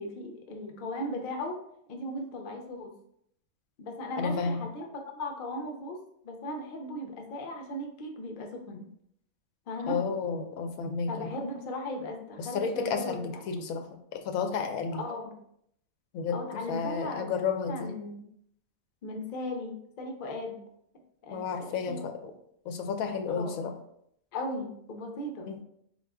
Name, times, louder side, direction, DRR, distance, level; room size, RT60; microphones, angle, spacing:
voice 1, 0.0-1.6 1.9-2.9 3.8-4.9 5.1-6.0 6.2-8.8 9.7-10.0 11.1-13.2 14.9-15.3 16.3-17.3 17.7-18.2 19.0-20.6 21.2-22.0 23.3-23.6 24.3-25.5, left 1 dB, 50° left, 2 dB, 0.6 m, -37 dB
voice 2, 4.2-4.6 9.9-11.3 12.4-13.8 14.1-15.0 16.1-17.9 21.3-22.3 22.7-23.7 25.5-25.6, left 5 dB, 90° left, 6 dB, 1.0 m, -32 dB
4.1 x 2.4 x 3.4 m, 0.71 s
omnidirectional pair, 1.4 m